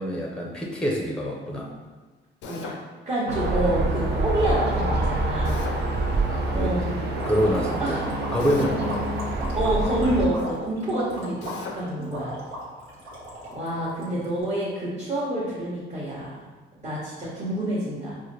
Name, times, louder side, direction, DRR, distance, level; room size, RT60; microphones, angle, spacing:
voice 1, 0.0-1.7 6.3-6.9 7.2-8.0 8.3-9.1 12.9-13.0, equal, 5° left, -1 dB, 0.6 m, -26 dB
Drill, 2.4-2.8 5.4-5.8 8.4-8.8 11.4-11.8, left 5 dB, 70° left, 0.5 m, -36 dB
voice 2, 3.1-5.7 6.5-6.9 7.8-8.0 9.5-12.3 13.5-16.4 16.8-18.2, right 1 dB, 30° right, -9 dB, 1.1 m, -27 dB
sound 1, 3.3-10.3, right 2 dB, 55° right, 0.6 m, -26 dB
sound 2, 7.1-14.5, equal, 80° right, 1.2 m, -36 dB
4.6 x 2.2 x 3.2 m, 1.3 s
cardioid pair, 90°, 20 cm